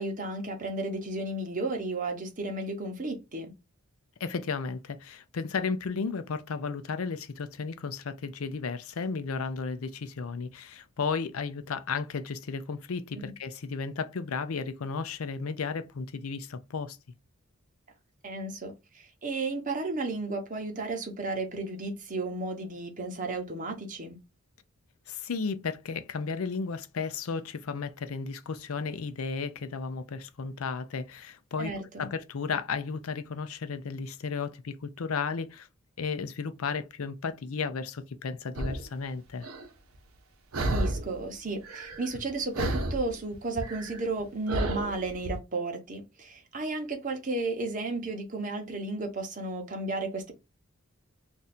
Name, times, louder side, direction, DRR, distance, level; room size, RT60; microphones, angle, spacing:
voice 1, 0.0-3.5 13.2-13.3 18.2-24.2 31.6-32.1 40.6-50.3, right 2 dB, 40° right, 0.9 m, -33 dB
voice 2, 4.2-17.0 25.1-35.7 36.0-39.5, left 5 dB, 75° left, 0.5 m, -34 dB
sound 1, 38.5-38.9 39.4-39.7 40.5-41.2 41.4-42.3 42.5-45.3, right 1 dB, 80° right, 0.7 m, -32 dB
2.6 x 2.5 x 4.1 m
head